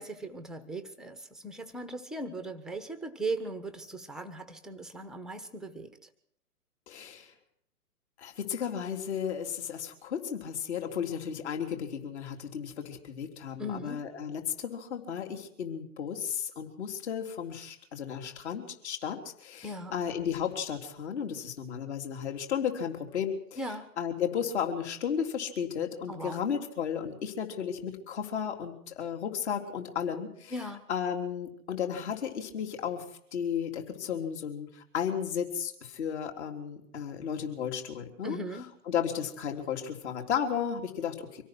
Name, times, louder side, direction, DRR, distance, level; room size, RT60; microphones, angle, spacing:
voice 1, 0.0-6.0 13.6-14.0 19.6-20.0 23.6-23.9 26.1-26.4 30.5-30.9 38.2-38.7, right 1 dB, ahead, 9 dB, 1.0 m, -38 dB
voice 2, 6.9-7.3 8.2-30.5 30.9-33.0 33.3-38.4 38.9-41.4, left 8 dB, 45° left, 4 dB, 3.6 m, -34 dB
25.0 x 17.5 x 6.1 m, 0.67 s
figure-of-eight pair, 130°, 45 cm